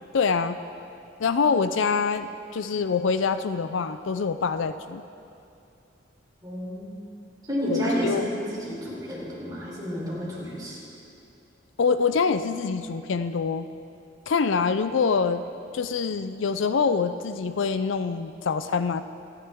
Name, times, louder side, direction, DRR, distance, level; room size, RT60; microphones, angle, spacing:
voice 1, 0.1-0.6 1.2-5.0 7.7-8.3 11.8-13.7 14.3-15.4 15.7-19.0, left 5 dB, 65° left, 11 dB, 0.4 m, -25 dB
voice 2, 6.4-7.1 7.5-10.8, equal, 20° right, -6 dB, 3.9 m, -30 dB
25.5 x 10.5 x 3.6 m, 2.6 s
head